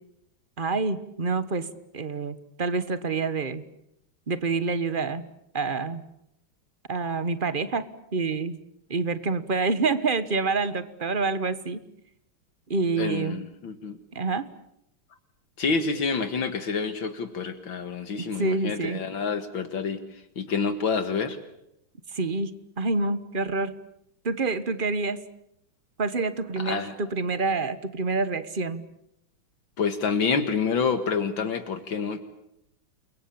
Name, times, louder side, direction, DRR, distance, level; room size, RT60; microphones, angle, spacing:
voice 1, 0.6-1.7 1.9-3.6 4.3-5.2 5.5-6.0 6.9-7.9 8.1-8.6 8.9-11.8 12.7-13.4 14.1-14.5 18.2-19.0 22.1-23.8 24.2-25.2 26.0-28.8, right 4 dB, 30° right, 14 dB, 1.2 m, -27 dB
voice 2, 13.0-14.0 15.6-21.4 26.6-26.9 29.8-32.2, left 5 dB, 70° left, 9 dB, 2.4 m, -28 dB
29.5 x 23.0 x 8.7 m, 0.78 s
omnidirectional pair, 2.3 m